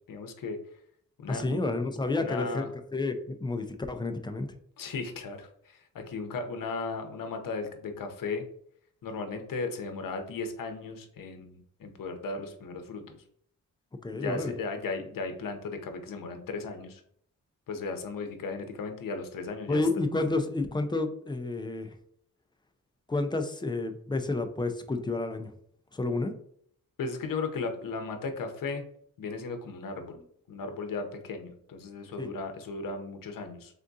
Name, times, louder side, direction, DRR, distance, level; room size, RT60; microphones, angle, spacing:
voice 1, 0.1-0.6 1.2-1.6 2.1-2.7 4.8-8.5 9.0-13.2 14.1-17.0 17.7-19.8 27.0-28.8 29.2-30.2 30.5-33.8, left 4 dB, 75° left, 6 dB, 0.7 m, -36 dB
voice 2, 1.3-4.5 14.0-14.5 19.7-21.9 23.1-25.5 25.9-26.3 32.2-32.3, left 2 dB, 15° left, 6 dB, 0.3 m, -30 dB
3.7 x 3.5 x 2.6 m, 0.65 s
wide cardioid pair, 140°, 34 cm